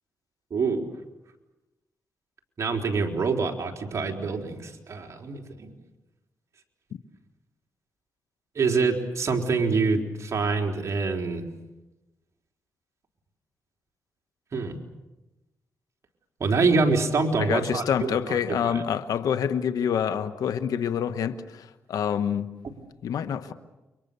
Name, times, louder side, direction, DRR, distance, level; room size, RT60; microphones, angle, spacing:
voice 1, 0.5-0.9 2.6-5.7 8.6-11.5 14.5-14.8 16.4-18.8 22.6-22.7, right 4 dB, 55° right, 1 dB, 4.2 m, -26 dB
voice 2, 17.4-22.5 23.0-23.5, left 8 dB, 85° left, 10 dB, 1.3 m, -27 dB
29.5 x 24.0 x 7.0 m, 1.0 s
cardioid pair, 70°, 6 cm